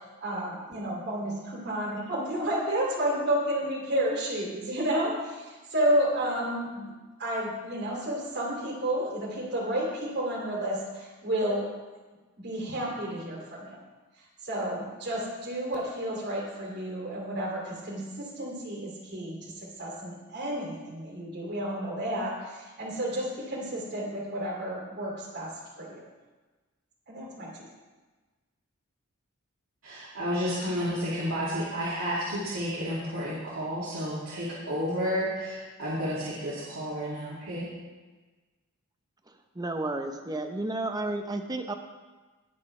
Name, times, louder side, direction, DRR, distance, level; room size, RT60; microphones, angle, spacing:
voice 1, 0.2-6.9 7.2-11.7 12.4-13.8 14.4-19.5 19.8-25.5 25.8-26.0 27.1-27.5, right 1 dB, 55° right, -2 dB, 2.8 m, -31 dB
voice 2, 29.8-37.7, equal, 75° right, -9 dB, 2.7 m, -31 dB
voice 3, 39.3-41.7, right 2 dB, 20° right, 5 dB, 0.8 m, -32 dB
19.5 x 6.6 x 3.3 m, 1.3 s
head